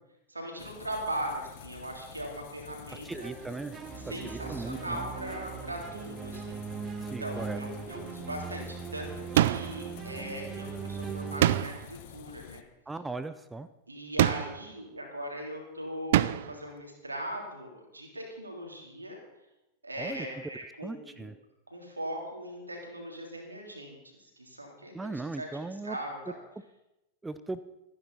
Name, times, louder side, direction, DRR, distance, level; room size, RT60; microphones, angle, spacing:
voice 1, 0.3-3.3 4.0-6.9 7.2-12.6 13.9-19.2 19.8-21.3 21.7-25.5 25.8-26.4, right 1 dB, 80° right, 1 dB, 3.6 m, -39 dB
sound 1, 0.6-12.6, left 13 dB, 50° left, 1.0 m, -49 dB
voice 2, 3.0-3.8 4.1-5.0 7.0-7.6 12.9-13.7 20.0-20.3 20.8-21.4 24.9-26.0 27.2-27.6, right 3 dB, 10° right, 13 dB, 0.6 m, -38 dB
sound 2, 3.1-11.6, right 6 dB, 25° right, 1.1 m, -40 dB
sound 3, 9.4-9.9 11.4-12.0 14.2-14.7 16.1-16.6, right 13 dB, 55° right, 0.4 m, -25 dB
26.5 x 10.0 x 4.2 m, 0.93 s
figure-of-eight pair, 90°, 0 cm